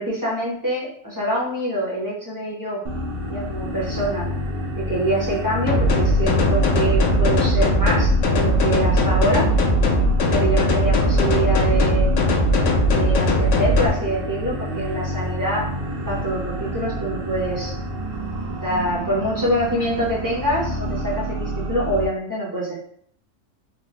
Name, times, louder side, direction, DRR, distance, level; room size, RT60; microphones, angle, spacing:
voice 1, 0.0-2.8 3.3-4.3 4.8-9.5 10.3-12.1 12.9-15.7 16.0-17.8 18.6-22.8, right 1 dB, 20° right, -6 dB, 0.6 m, -25 dB
sound 1, 2.8-22.0, equal, 65° right, 0.6 m, -29 dB
sound 2, 5.7-13.9, left 1 dB, 70° left, 0.9 m, -19 dB
3.7 x 2.1 x 2.8 m, 0.63 s
omnidirectional pair, 1.4 m